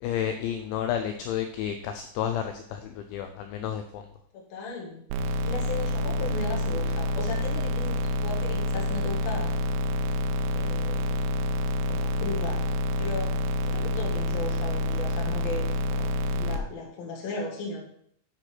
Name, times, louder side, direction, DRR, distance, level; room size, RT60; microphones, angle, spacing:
voice 1, 0.0-4.0, left 9 dB, 90° left, 7 dB, 2.6 m, -31 dB
voice 2, 4.3-9.7 10.5-11.1 11.9-12.6 13.0-17.8, left 3 dB, 55° left, -2 dB, 3.1 m, -36 dB
sound 1, 5.1-16.6, left 1 dB, 85° right, 2.6 m, -27 dB
9.7 x 4.6 x 6.0 m, 0.69 s
omnidirectional pair, 5.9 m